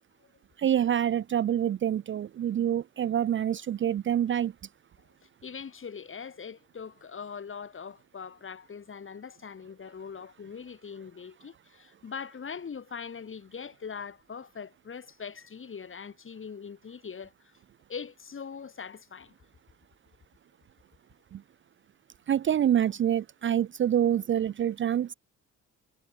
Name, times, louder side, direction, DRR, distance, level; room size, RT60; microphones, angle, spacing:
voice 1, 0.6-4.5 21.3-21.4 22.3-25.1, right 10 dB, 40° right, 0.5 m, -26 dB
voice 2, 5.4-17.5 17.9-19.4, left 6 dB, 45° left, 7.4 m, -42 dB
cardioid pair, 90°, 30 cm